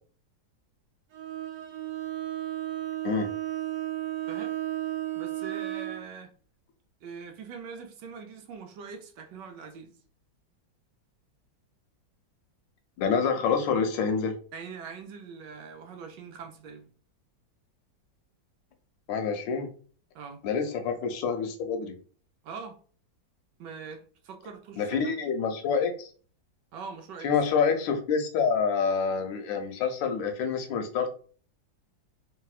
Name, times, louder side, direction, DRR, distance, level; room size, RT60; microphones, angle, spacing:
Bowed string instrument, 1.1-6.1, right 14 dB, 90° right, 1.5 m, -33 dB
voice 1, 4.2-4.6 5.2-6.3 7.0-10.0 14.5-16.9 20.1-20.4 22.4-22.8 23.6-25.1 26.7-27.3, right 5 dB, 75° right, 1.2 m, -42 dB
voice 2, 13.0-14.4 19.1-19.7 20.4-21.9 24.8-26.1 27.2-31.1, left 6 dB, 80° left, 1.3 m, -27 dB
3.2 x 2.7 x 2.3 m
omnidirectional pair, 2.1 m